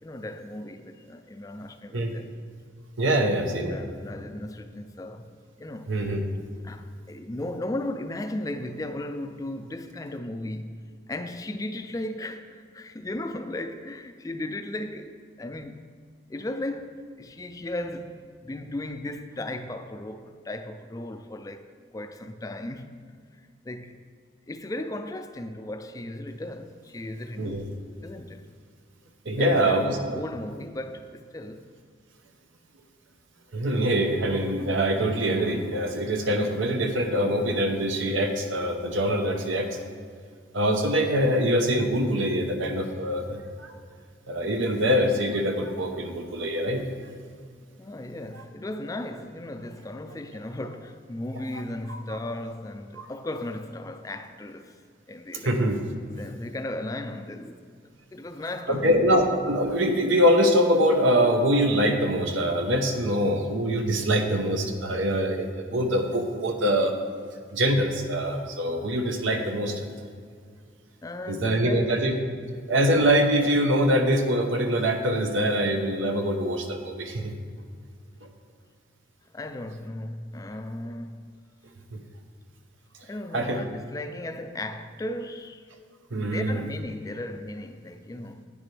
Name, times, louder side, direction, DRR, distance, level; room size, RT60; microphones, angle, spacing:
voice 1, 0.0-2.3 3.1-5.3 5.6-6.1 6.6-10.8 11.1-15.8 16.3-23.0 23.3-24.0 24.5-27.6 28.0-28.4 29.4-31.7 47.8-54.8 55.1-55.6 56.2-57.6 58.1-59.2 71.0-72.0 72.4-72.5 79.3-81.4 83.0-85.6 86.1-88.4, left 1 dB, 20° left, 0.3 m, -36 dB
voice 2, 3.0-3.8 5.9-6.2 27.4-27.6 29.2-30.0 33.5-39.8 40.5-43.7 44.3-46.8 48.3-48.4 51.9-52.2 53.0-53.1 55.4-55.8 58.7-66.9 67.5-69.9 71.3-72.2 72.7-77.3 81.9-82.0 83.3-83.6 86.1-86.6, equal, 85° right, 0.9 m, -24 dB
9.9 x 9.3 x 3.3 m
head